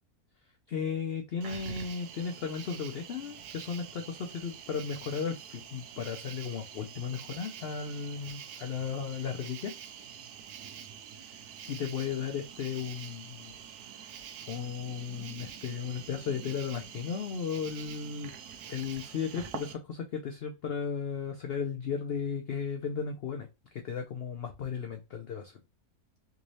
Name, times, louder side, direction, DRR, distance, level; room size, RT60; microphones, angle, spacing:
voice 1, 0.7-9.7 11.2-13.5 13.8-14.2 14.5-18.3 18.7-25.6, left 6 dB, 70° left, 4 dB, 0.6 m, -35 dB
Cricket, 1.4-19.7, right 8 dB, 85° right, 1.1 m, -46 dB
3.5 x 2.6 x 3.1 m, 0.25 s
omnidirectional pair, 1.6 m